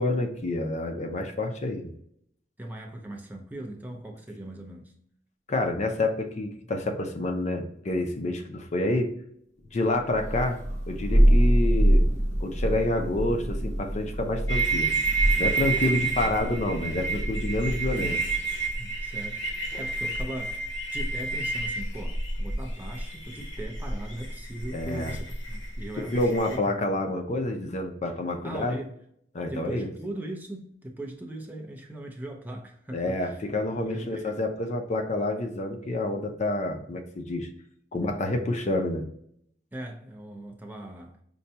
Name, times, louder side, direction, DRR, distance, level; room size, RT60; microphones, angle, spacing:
voice 1, 0.0-1.9 5.5-9.1 9.7-10.6 10.9-12.0 12.4-14.9 15.4-18.2 24.7-25.2 26.1-28.8 29.3-29.9 32.9-37.5 37.9-39.1, left 2 dB, 40° left, 0.5 m, -28 dB
voice 2, 2.6-4.9 8.2-8.3 15.8-16.1 18.0-18.2 18.8-26.6 28.4-28.9 29.5-33.5 33.8-34.5 37.9-38.0 39.7-41.2, right 1 dB, 10° right, 0.5 m, -39 dB
Thunder, 10.1-18.5, equal, 40° right, 1.0 m, -25 dB
sound 1, 14.5-26.6, right 3 dB, 75° left, 0.8 m, -30 dB
5.2 x 2.2 x 2.7 m
head